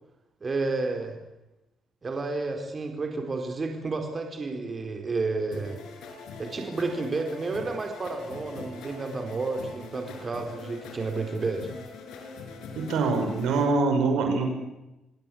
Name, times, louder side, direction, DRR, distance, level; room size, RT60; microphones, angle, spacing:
voice 1, 0.4-1.2 2.0-5.8 6.4-11.7, right 3 dB, 35° right, 4 dB, 4.5 m, -31 dB
sound 1, 5.5-13.6, left 4 dB, 85° left, 6.4 m, -43 dB
voice 2, 12.7-14.5, right 3 dB, 85° right, 4 dB, 6.7 m, -24 dB
28.0 x 17.5 x 8.7 m, 0.96 s
cardioid pair, 90°, 0 cm